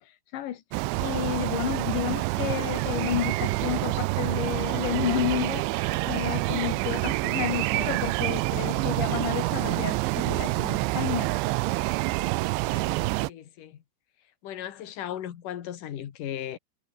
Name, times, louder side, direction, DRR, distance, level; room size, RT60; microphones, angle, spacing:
sound 1, 0.7-13.3, right 21 dB, 80° right, 2.8 m, -27 dB
voice 1, 1.0-11.3 13.0-13.1, left 12 dB, 70° left, 3.8 m, -31 dB
voice 2, 12.6-13.8 14.4-16.6, left 11 dB, 55° left, 2.8 m, -37 dB
omnidirectional pair, 5.6 m